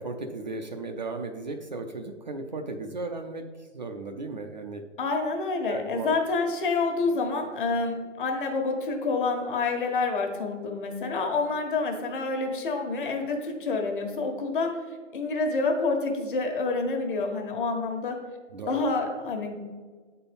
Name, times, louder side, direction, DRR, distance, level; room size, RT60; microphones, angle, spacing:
voice 1, 0.0-3.5 3.7-4.8 5.7-6.1 18.5-18.8, right 3 dB, 35° right, 4 dB, 0.5 m, -35 dB
voice 2, 5.0-14.8 15.1-18.2 18.7-19.6, left 3 dB, 40° left, 3 dB, 1.4 m, -28 dB
8.9 x 4.5 x 5.2 m, 1.5 s
hypercardioid pair, 160°, 38 cm